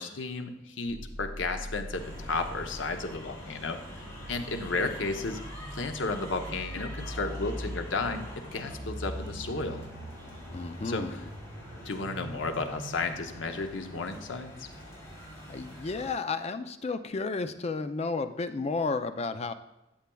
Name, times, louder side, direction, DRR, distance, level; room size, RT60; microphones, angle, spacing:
voice 1, 0.0-5.4 5.7-9.9 10.8-11.2 11.8-14.7, left 3 dB, 80° left, 6 dB, 0.8 m, -33 dB
sound 1, 0.9-14.6, equal, 45° right, 1.4 m, -43 dB
sound 2, 1.9-16.1, equal, 15° left, 2.7 m, -46 dB
voice 2, 10.5-11.3 15.5-19.5, left 4 dB, 35° left, 9 dB, 0.4 m, -32 dB
11.5 x 7.2 x 2.3 m, 0.94 s
head